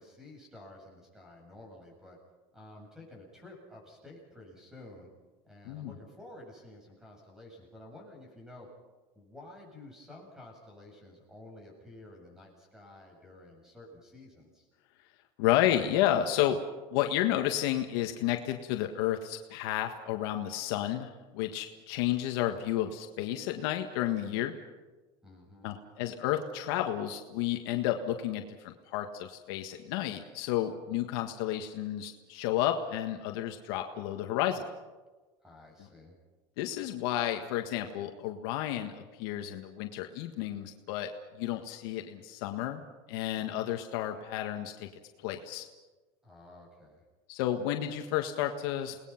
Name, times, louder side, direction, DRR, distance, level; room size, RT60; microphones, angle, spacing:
voice 1, 0.0-2.2 2.5-5.1 5.4-8.7 9.1-14.7 25.2-25.7 35.4-36.2 46.2-47.0, left 1 dB, 5° right, 0 dB, 7.7 m, -51 dB
voice 2, 15.4-16.6 16.9-24.5 25.6-34.6 35.8-35.9 36.6-41.1 41.4-42.8 43.1-44.9 45.2-45.6 47.3-49.0, left 12 dB, 75° left, 5 dB, 1.6 m, -31 dB
29.0 x 19.5 x 5.9 m, 1.2 s
cardioid pair, 140°, 13 cm